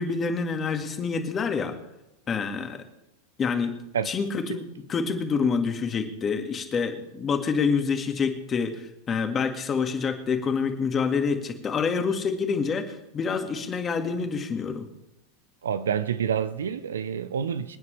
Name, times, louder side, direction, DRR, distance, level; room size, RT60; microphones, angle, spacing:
voice 1, 0.0-1.8 2.3-2.8 3.4-3.8 4.1-14.9, left 5 dB, 30° left, 2.0 m, -27 dB
voice 2, 15.6-17.8, right 8 dB, 80° right, 0.7 m, -28 dB
26.0 x 9.5 x 3.3 m
hypercardioid pair, 95°, 0 cm